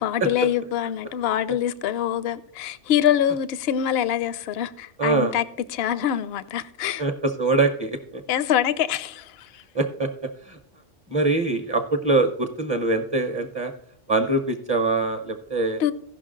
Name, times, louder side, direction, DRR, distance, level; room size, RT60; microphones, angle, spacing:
voice 1, 0.0-5.4 5.7-7.0 8.3-9.6 15.8-15.9, left 10 dB, 65° left, 0.7 m, -24 dB
voice 2, 5.0-5.3 7.0-8.2 9.7-10.1 10.5-10.6 11.1-13.7 14.1-15.8, right 3 dB, 25° right, 0.6 m, -23 dB
16.0 x 5.8 x 3.8 m
omnidirectional pair, 1.3 m